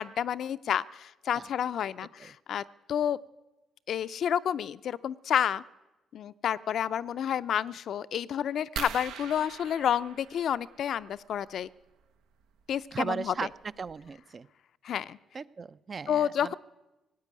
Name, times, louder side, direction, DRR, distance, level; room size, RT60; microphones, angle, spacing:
voice 1, 0.0-3.2 3.9-5.6 6.1-11.7 12.7-13.3 14.8-15.2 16.1-16.5, left 9 dB, 65° left, 15 dB, 0.5 m, -30 dB
sound 1, 8.8-11.1 12.7-12.9 13.5-13.6 13.9-14.1, right 7 dB, 90° right, 0.8 m, -41 dB
voice 2, 12.9-13.5 13.8-14.5 15.3-16.5, right 5 dB, 40° right, 16 dB, 0.4 m, -36 dB
17.5 x 8.2 x 9.5 m, 1.0 s
cardioid pair, 90°, 0 cm